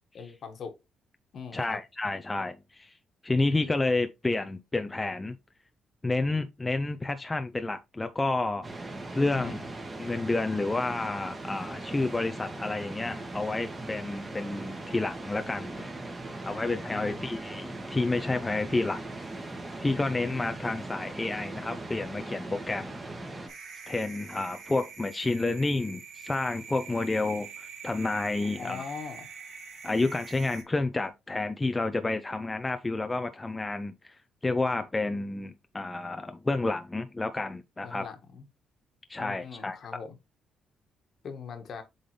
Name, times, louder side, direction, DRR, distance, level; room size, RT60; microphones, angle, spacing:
voice 1, 0.1-0.7 1.3-1.8 9.3-9.7 16.9-17.3 28.4-29.3 37.8-38.4 39.2-40.2 41.2-41.8, left 6 dB, 60° left, 1.6 m, -41 dB
voice 2, 1.5-2.9 3.2-5.4 6.0-8.7 9.1-9.6 10.0-15.9 16.4-19.0 19.4-19.5 19.8-23.0 23.9-28.8 29.8-34.1 34.4-38.1 39.1-39.8, left 2 dB, 20° left, 0.6 m, -30 dB
sound 1, 8.6-23.5, right 2 dB, 25° right, 1.9 m, -39 dB
sound 2, 23.5-30.6, right 6 dB, 70° right, 3.2 m, -45 dB
7.7 x 3.9 x 3.3 m
cardioid pair, 90°, 0 cm